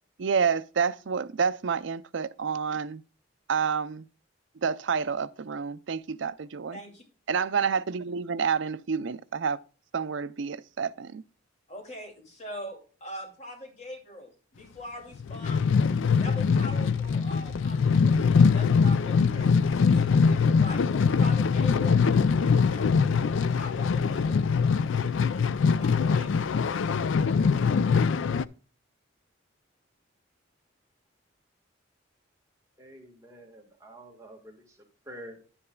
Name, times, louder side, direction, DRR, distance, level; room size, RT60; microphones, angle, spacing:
voice 1, 0.2-3.0 3.5-4.0 4.6-6.8 7.3-9.6 9.9-11.2, right 6 dB, 65° right, 0.5 m, -29 dB
voice 2, 6.7-7.0 11.7-15.7 16.2-24.4 25.8-26.5, equal, 35° left, 2.4 m, -43 dB
sound 1, 15.2-28.4, left 5 dB, 70° left, 0.4 m, -23 dB
voice 3, 32.8-34.8 35.0-35.4, right 1 dB, 15° right, 1.6 m, -47 dB
10.5 x 9.9 x 2.2 m
head